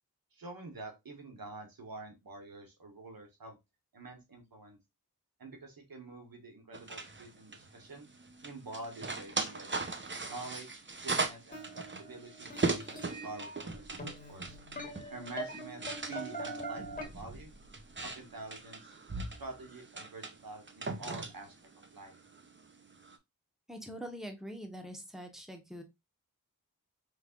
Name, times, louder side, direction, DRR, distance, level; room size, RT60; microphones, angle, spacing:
voice 1, 0.3-3.6 3.9-4.8 5.4-8.1 8.4-9.8 10.3-12.9 13.2-14.6 15.1-17.5 18.0-18.9 19.4-21.5 21.9-22.2, right 2 dB, 80° right, 3 dB, 1.3 m, -47 dB
sound 1, 6.7-23.2, right 3 dB, 35° right, 0.8 m, -40 dB
sound 2, 11.5-17.0, right 1 dB, 25° left, 1.8 m, -43 dB
voice 2, 23.7-25.8, equal, ahead, 5 dB, 1.2 m, -44 dB
5.2 x 3.4 x 2.5 m, 0.22 s
cardioid pair, 45°, 35 cm